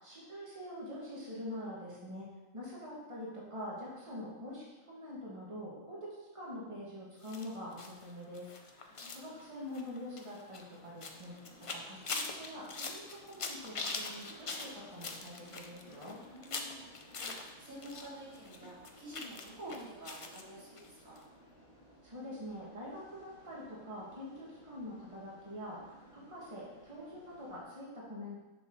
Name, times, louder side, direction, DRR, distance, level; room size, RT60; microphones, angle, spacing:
voice 1, 0.0-2.3 2.5-11.3 11.7-16.2 22.0-28.4, left 1 dB, 25° right, -6 dB, 2.0 m, -45 dB
sound 1, 7.2-18.1 18.3-20.4 20.8-20.9 21.2-21.3, left 3 dB, 45° left, 0.4 m, -43 dB
voice 2, 8.9-9.4 16.2-21.2, right 1 dB, 90° right, -9 dB, 3.2 m, -49 dB
sound 2, 11.1-27.6, equal, 65° right, 2.2 m, -59 dB
6.9 x 6.5 x 4.0 m, 1.1 s
omnidirectional pair, 1.4 m